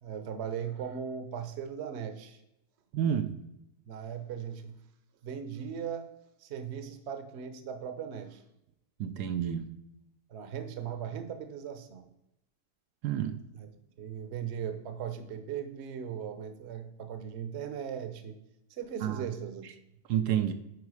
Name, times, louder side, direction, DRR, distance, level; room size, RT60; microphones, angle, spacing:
voice 1, 0.0-2.4 3.9-4.8 5.2-6.1 6.4-8.4 10.3-12.0 13.5-13.7 14.0-18.3 18.7-19.7 20.3-20.5, right 8 dB, 50° right, 8 dB, 1.0 m, -38 dB
voice 2, 2.9-3.3 9.0-9.6 13.0-13.4 19.0-19.3 20.1-20.5, right 9 dB, 75° right, 8 dB, 1.2 m, -29 dB
9.7 x 4.6 x 4.8 m, 0.85 s
omnidirectional pair, 1.7 m